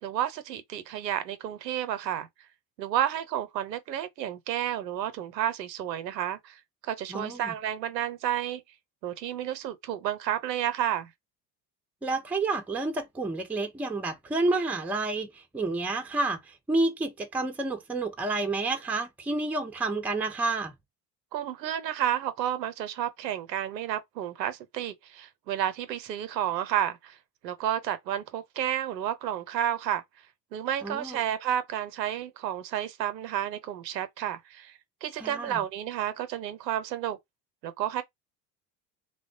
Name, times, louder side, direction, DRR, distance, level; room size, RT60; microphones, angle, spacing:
voice 1, 0.0-2.3 2.8-8.6 9.0-11.1 21.3-27.2 27.4-30.0 30.5-37.2 37.6-38.0, right 11 dB, 80° right, 0.6 m, -31 dB
voice 2, 7.1-7.5 12.0-20.7 30.8-31.2 35.2-35.6, right 2 dB, 5° right, 0.4 m, -30 dB
3.0 x 2.1 x 2.5 m
figure-of-eight pair, 65°, 49 cm